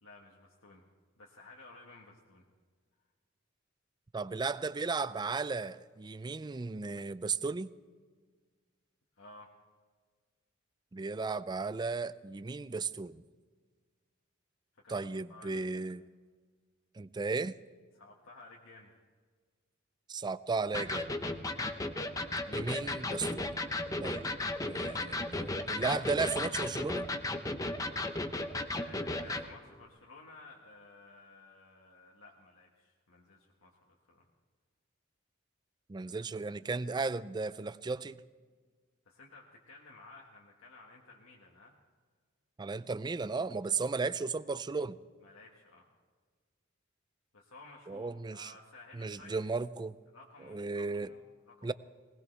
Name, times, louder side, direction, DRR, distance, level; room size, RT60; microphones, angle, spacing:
voice 1, 0.0-0.8 1.2-2.4 9.2-9.5 14.8-14.9 15.3-15.9 17.9-18.9 28.7-34.3 39.0-41.8 43.9-44.0 45.2-45.9 47.3-49.4 50.1-51.7, left 3 dB, 80° left, 1.6 m, -55 dB
voice 2, 4.1-7.7 10.9-13.2 14.9-16.0 17.0-17.5 20.1-21.1 22.5-23.5 24.0-27.1 35.9-38.2 42.6-45.0 47.9-48.5 48.9-50.0 50.5-51.1 51.6-51.7, right 4 dB, 20° right, 0.4 m, -35 dB
Electric guitar, 20.7-29.5, left 2 dB, 15° left, 0.8 m, -35 dB
20.0 x 19.5 x 3.3 m
head